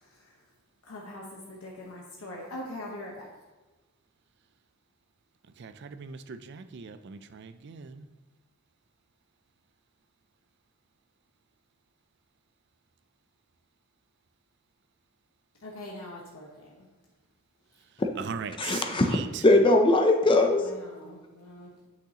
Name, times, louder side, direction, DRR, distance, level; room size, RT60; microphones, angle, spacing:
voice 1, 0.9-3.3 15.6-16.9 20.6-21.9, left 1 dB, 80° left, -2 dB, 1.0 m, -42 dB
voice 2, 5.6-8.0 18.2-19.4, right 6 dB, 50° right, 10 dB, 0.4 m, -39 dB
voice 3, 18.6-20.6, left 2 dB, 25° left, 5 dB, 0.5 m, -21 dB
8.1 x 6.3 x 2.9 m, 1.2 s
head